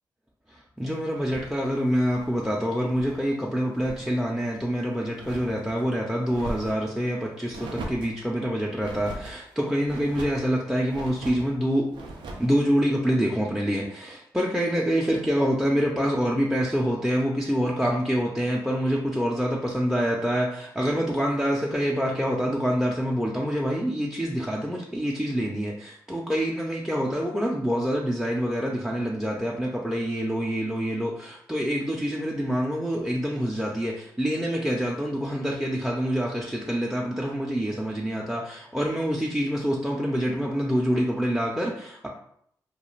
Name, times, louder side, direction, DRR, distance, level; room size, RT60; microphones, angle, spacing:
voice 1, 0.5-11.9 12.4-42.1, equal, 5° right, -2 dB, 0.5 m, -26 dB
sound 1, 1.2-3.3 3.6-4.1 4.5-5.8 6.3-6.9 7.5-8.2 8.8-9.4 9.8-10.5 10.9-11.5 11.9-12.5, right 2 dB, 80° right, 0.4 m, -40 dB
2.4 x 2.3 x 3.1 m, 0.68 s
supercardioid pair, 45°, 8 cm